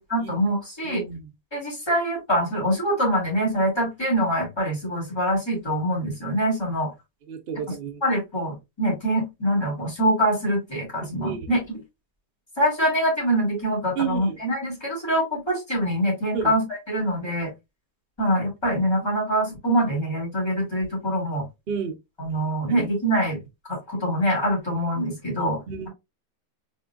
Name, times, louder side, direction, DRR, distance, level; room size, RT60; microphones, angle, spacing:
voice 1, 0.1-1.0 1.5-6.9 8.0-11.6 12.6-17.5 18.2-21.5 22.2-23.4 23.7-25.6, equal, 15° left, 2.2 m, -24 dB
voice 2, 0.8-1.3 7.3-8.0 11.0-11.5 14.0-14.4 16.3-16.5 21.7-22.0 22.8-22.9 25.7-25.9, right 7 dB, 55° right, 0.6 m, -31 dB
4.3 x 3.8 x 2.2 m
omnidirectional pair, 1.8 m